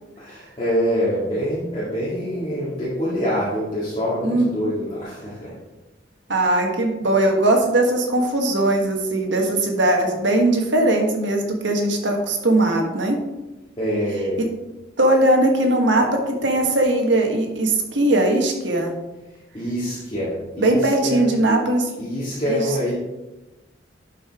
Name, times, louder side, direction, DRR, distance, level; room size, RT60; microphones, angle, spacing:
voice 1, 0.2-5.6 13.8-14.4 19.3-21.2 22.0-22.9, equal, 30° left, -9 dB, 2.1 m, -25 dB
voice 2, 6.3-13.2 15.0-18.9 20.6-21.9 22.5-22.6, right 1 dB, 75° right, 2 dB, 1.5 m, -19 dB
11.5 x 5.5 x 3.7 m, 1.1 s
head